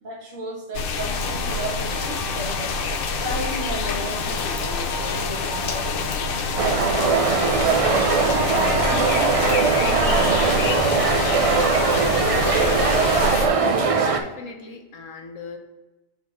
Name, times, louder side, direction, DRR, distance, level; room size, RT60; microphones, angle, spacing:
voice 1, 0.0-2.8 3.2-6.5 7.3-7.8 8.3-10.3 10.9-11.3, right 1 dB, 90° right, -1 dB, 2.0 m, -34 dB
sound 1, 0.7-13.5, left 5 dB, 55° left, 0.7 m, -27 dB
sound 2, 1.1-12.0, left 1 dB, 20° left, 0.8 m, -34 dB
sound 3, 6.6-14.2, right 4 dB, 50° right, 0.4 m, -20 dB
voice 2, 13.6-15.6, left 4 dB, 85° left, 4 dB, 1.3 m, -39 dB
4.7 x 4.1 x 5.9 m, 1.0 s
omnidirectional pair, 1.3 m